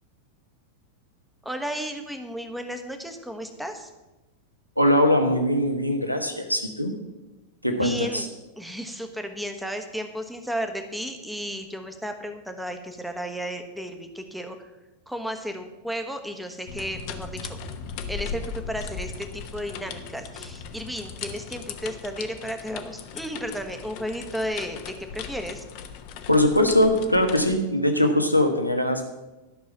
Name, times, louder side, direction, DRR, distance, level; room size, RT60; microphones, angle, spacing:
voice 1, 1.4-3.9 7.7-14.7 15.1-17.6 18.1-25.6, equal, ahead, 5 dB, 1.2 m, -34 dB
voice 2, 4.8-6.9 7.6-8.3 26.3-29.0, left 1 dB, 90° left, 4 dB, 1.3 m, -21 dB
sound 1, 16.7-27.6, left 6 dB, 45° left, 1.0 m, -38 dB
12.0 x 6.3 x 7.3 m, 1.1 s
figure-of-eight pair, 90°, 0 cm